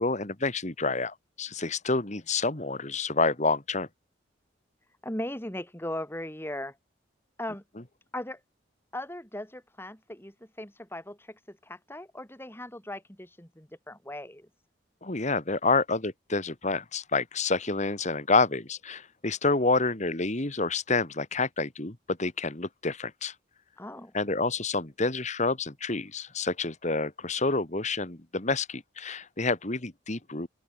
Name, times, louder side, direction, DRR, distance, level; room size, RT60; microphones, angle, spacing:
voice 1, 0.0-3.9 15.0-23.3 24.1-30.5, left 3 dB, 40° left, 2.0 m, -28 dB
voice 2, 5.0-6.8 7.4-7.6 8.1-8.4 8.9-14.5 23.8-24.1, left 1 dB, 10° left, 3.9 m, -38 dB
open air
head